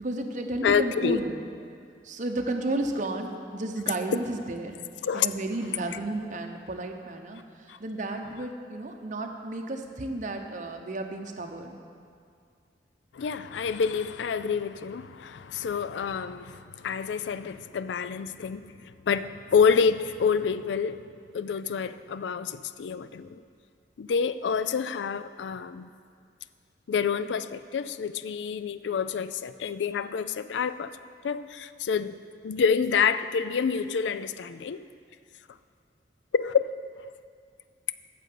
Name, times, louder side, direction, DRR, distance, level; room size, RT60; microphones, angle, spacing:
voice 1, 0.0-1.5 2.0-4.8 5.1-7.4 7.8-11.8, right 2 dB, 45° right, 3 dB, 0.8 m, -32 dB
voice 2, 0.6-1.2 4.1-4.2 5.0-5.3 7.7-7.8 8.4-8.5 13.1-23.4 24.0-25.9 26.9-30.9 31.2-32.2 32.4-34.9 36.3-36.7, left 6 dB, 80° left, 13 dB, 0.4 m, -28 dB
9.0 x 6.8 x 7.6 m, 2.2 s
head